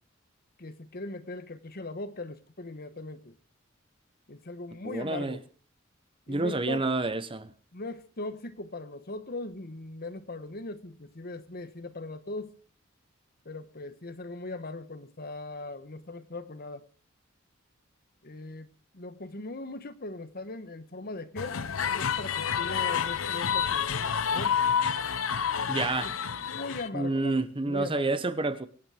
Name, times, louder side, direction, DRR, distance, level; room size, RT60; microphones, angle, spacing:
voice 1, 0.6-3.4 4.3-5.5 6.3-6.9 7.7-12.5 13.4-16.8 18.2-24.6 26.0-28.2, left 2 dB, 50° left, 1.3 m, -40 dB
voice 2, 4.8-5.4 6.3-7.5 25.7-26.1 26.9-28.7, right 2 dB, 25° right, 0.9 m, -29 dB
sound 1, 21.4-26.9, left 7 dB, 85° left, 0.8 m, -29 dB
24.0 x 9.3 x 5.0 m
head